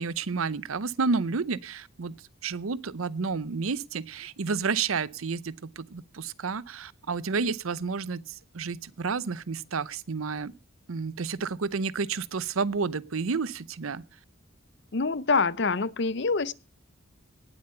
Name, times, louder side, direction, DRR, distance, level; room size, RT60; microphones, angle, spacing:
voice 1, 0.0-10.5 10.9-14.0, right 4 dB, 85° right, 0.7 m, -30 dB
voice 2, 14.9-16.5, left 4 dB, 55° left, 0.6 m, -25 dB
18.5 x 7.9 x 5.6 m
head